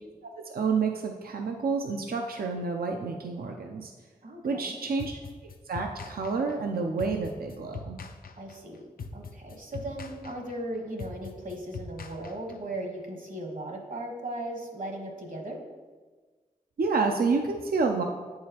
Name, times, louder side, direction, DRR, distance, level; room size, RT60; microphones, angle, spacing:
voice 1, 0.5-3.9 4.4-5.2 5.7-8.0 16.8-18.0, right 4 dB, 85° right, 2 dB, 0.4 m, -29 dB
voice 2, 4.2-4.8 8.4-8.9 9.1-15.6, right 1 dB, 65° right, 2 dB, 1.2 m, -37 dB
sound 1, 5.0-12.8, left 4 dB, 80° left, 0.4 m, -42 dB
8.2 x 4.8 x 2.8 m, 1.4 s
cardioid pair, 40°, 15 cm